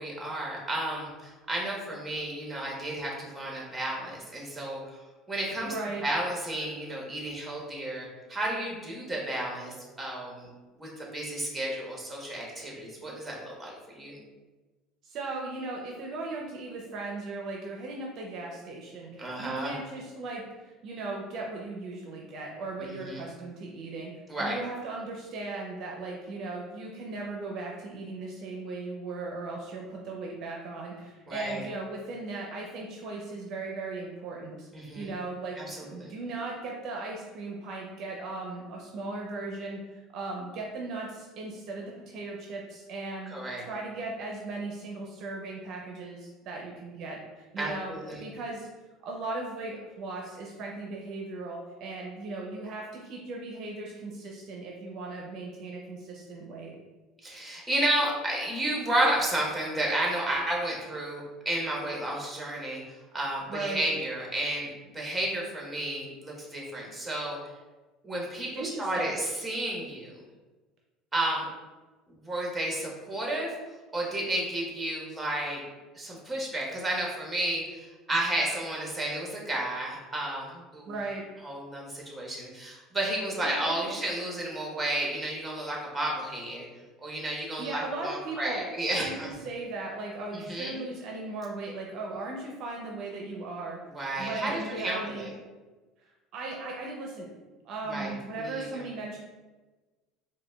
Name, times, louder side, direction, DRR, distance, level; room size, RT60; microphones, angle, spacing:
voice 1, 0.0-4.8 5.3-5.7 6.0-10.5 10.8-14.2 19.2-19.7 22.8-23.2 24.3-24.6 31.3-31.6 34.7-35.1 35.6-36.1 43.3-43.6 47.6-48.2 57.2-62.8 63.1-64.7 64.9-67.4 68.0-70.2 71.1-71.5 72.2-73.5 73.9-75.6 75.9-80.9 81.4-86.7 87.0-89.3 90.3-90.8 93.9-95.3 97.9-98.8, right 1 dB, 10° right, -2 dB, 1.1 m, -32 dB
voice 2, 5.6-6.1 15.0-24.1 24.4-34.7 35.0-47.9 48.2-48.7 49.0-56.7 63.5-63.9 68.5-69.1 80.9-81.3 83.4-83.9 87.6-88.6 89.0-93.8 94.2-95.3 96.3-97.3 97.6-99.2, right 3 dB, 55° right, -1 dB, 0.5 m, -37 dB
4.8 x 2.2 x 2.3 m, 1.2 s
supercardioid pair, 95°, 0 cm